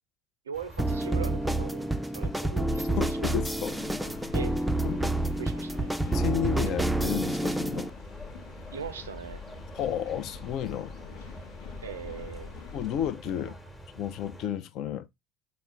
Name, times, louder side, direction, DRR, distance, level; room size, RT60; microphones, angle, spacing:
sound 1, 0.5-14.5, equal, 20° left, 1.1 m, -47 dB
voice 1, 0.5-1.9 2.1-3.2 4.3-4.5 5.4-5.9 8.7-9.4 11.8-12.5, right 7 dB, 80° right, 0.4 m, -40 dB
sound 2, 0.8-7.9, right 1 dB, 5° right, 0.4 m, -28 dB
sound 3, 2.7-13.1, left 5 dB, 70° left, 0.8 m, -45 dB
voice 2, 3.0-3.8 4.8-5.1 6.1-7.9 9.7-10.9 12.7-13.6 14.0-15.1, left 10 dB, 55° left, 0.5 m, -32 dB
4.1 x 2.0 x 3.5 m
figure-of-eight pair, 65°, 0 cm